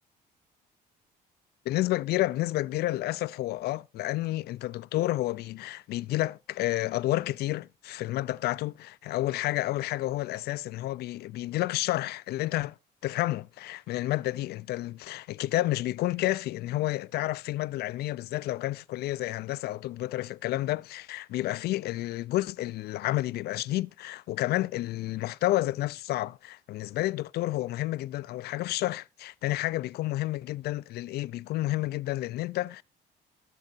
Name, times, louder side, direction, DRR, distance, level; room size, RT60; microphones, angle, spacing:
voice 1, 1.7-12.8 13.0-32.8, left 16 dB, 70° left, 0.5 m, -30 dB
21.5 x 7.7 x 2.6 m
cardioid pair, 110°, 17 cm